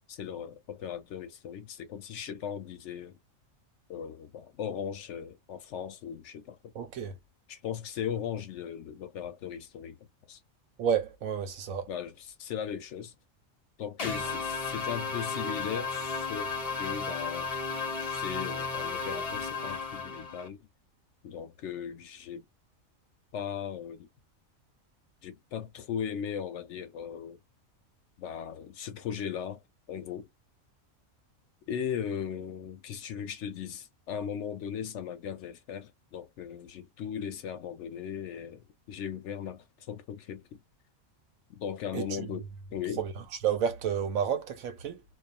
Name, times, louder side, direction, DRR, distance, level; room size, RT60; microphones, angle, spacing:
voice 1, 0.1-3.2 3.9-6.7 7.5-10.4 11.9-12.1 12.4-13.1 13.8-16.5 16.8-17.5 18.0-20.6 21.2-22.5 23.3-24.1 25.2-27.4 28.2-29.6 29.9-30.3 31.7-40.6 41.5-42.5 42.7-43.0, left 8 dB, 70° left, 0.8 m, -38 dB
voice 2, 6.7-7.2 10.8-11.9 41.9-42.3 43.0-45.0, right 8 dB, 85° right, 1.2 m, -31 dB
sound 1, 14.0-20.5, left 4 dB, 40° left, 0.6 m, -34 dB
2.3 x 2.3 x 2.3 m
omnidirectional pair, 1.4 m